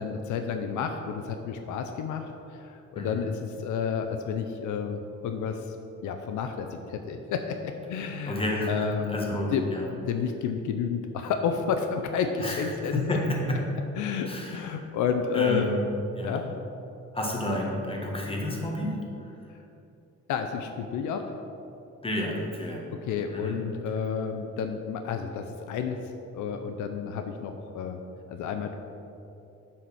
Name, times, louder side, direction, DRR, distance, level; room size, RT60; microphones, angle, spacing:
voice 1, 0.0-5.8 6.0-8.4 8.7-9.7 10.1-13.0 14.0-15.6 16.2-16.4 20.3-21.2 23.1-26.0 26.3-28.0 28.3-28.8, left 6 dB, 80° left, 6 dB, 0.6 m, -30 dB
voice 2, 2.9-3.3 7.9-9.9 12.4-13.7 14.2-14.8 15.3-15.8 16.1-16.5 17.1-19.4 22.0-22.9 23.3-23.6 23.9-24.0, left 1 dB, 20° left, -1 dB, 1.6 m, -31 dB
7.4 x 4.2 x 6.2 m, 2.7 s
cardioid pair, 90°, 30 cm